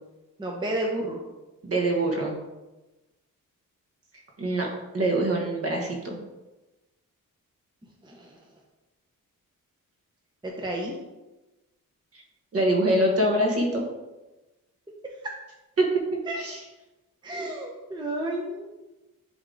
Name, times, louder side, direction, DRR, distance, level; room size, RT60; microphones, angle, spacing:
voice 1, 0.4-1.2 8.0-8.4 10.4-10.9 16.3-16.4 17.2-18.7, right 1 dB, 15° right, -1 dB, 0.7 m, -31 dB
voice 2, 1.6-2.4 4.4-4.7 4.9-6.1 12.1-12.2 12.5-13.8 15.8-15.9 16.4-16.6, right 1 dB, 45° right, 0 dB, 1.6 m, -24 dB
10.5 x 3.5 x 3.9 m, 1.1 s
wide cardioid pair, 160°, 33 cm